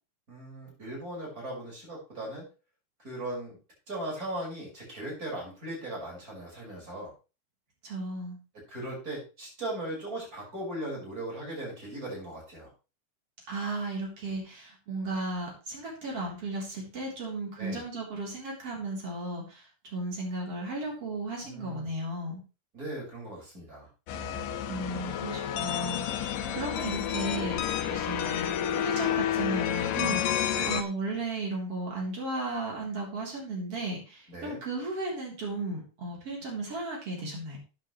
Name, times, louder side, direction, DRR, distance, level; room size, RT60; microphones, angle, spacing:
voice 1, 0.3-2.4 3.0-3.6 3.9-7.1 8.7-12.7 17.6-17.8 21.5-21.9 22.7-23.9 30.5-30.8 34.3-34.6, right 1 dB, 25° right, -3 dB, 6.1 m, -38 dB
voice 2, 7.8-8.4 13.5-22.4 24.7-27.6 27.9-37.6, right 2 dB, 45° right, -2 dB, 4.6 m, -35 dB
sound 1, 24.1-30.8, left 10 dB, 80° left, 2.6 m, -30 dB
13.5 x 8.8 x 3.2 m, 0.32 s
omnidirectional pair, 3.9 m